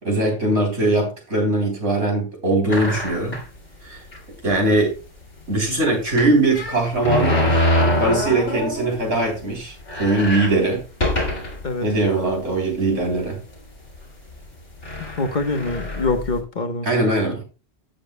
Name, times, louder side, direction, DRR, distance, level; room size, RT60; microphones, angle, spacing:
voice 1, 0.0-3.4 3.8-4.0 4.4-4.9 5.5-7.7 7.9-10.8 11.8-13.4 16.8-17.4, right 2 dB, 75° right, 3.9 m, -21 dB
sound 1, 2.7-3.6 4.1-4.2 4.5-4.6 6.1-9.0 9.4-9.5 9.8-11.7 12.3-12.4 13.3-13.5 14.4-14.5 14.8-16.4, left 1 dB, 65° left, 2.9 m, -24 dB
voice 2, 15.0-16.9, left 3 dB, 40° left, 1.3 m, -25 dB
15.5 x 6.7 x 2.2 m
omnidirectional pair, 1.3 m